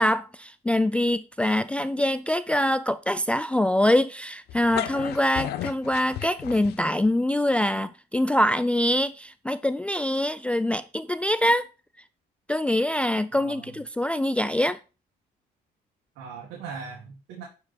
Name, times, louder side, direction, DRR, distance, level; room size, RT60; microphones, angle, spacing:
voice 1, 0.0-11.6 12.5-14.8, left 1 dB, 5° left, 0.3 m, -24 dB
sound 1, 4.5-7.1, left 12 dB, 70° left, 0.7 m, -33 dB
voice 2, 13.3-13.7 16.2-17.4, right 5 dB, 90° right, 2.1 m, -39 dB
11.0 x 4.9 x 4.3 m
cardioid pair, 110°, 17 cm